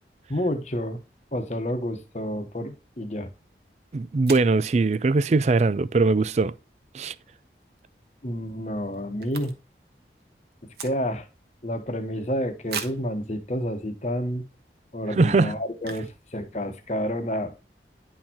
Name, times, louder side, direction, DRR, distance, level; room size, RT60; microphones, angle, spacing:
voice 1, 0.3-1.0 1.3-3.3 8.2-9.5 10.8-11.3 11.6-14.4 14.9-17.7, equal, 40° left, 1.1 m, -29 dB
sound 1, 3.6-3.7 4.2-4.6 7.5-7.8 8.1-8.2 8.4-9.9 10.1-11.4 11.8-11.9 12.7-13.1 13.8-13.9 14.4-14.6 15.8-16.2 16.5-16.6 16.8-17.1, right 6 dB, 65° right, 1.1 m, -38 dB
voice 2, 3.9-6.5 6.9-7.1 15.2-15.5, right 3 dB, 40° right, 0.4 m, -21 dB
10.5 x 4.4 x 2.8 m
head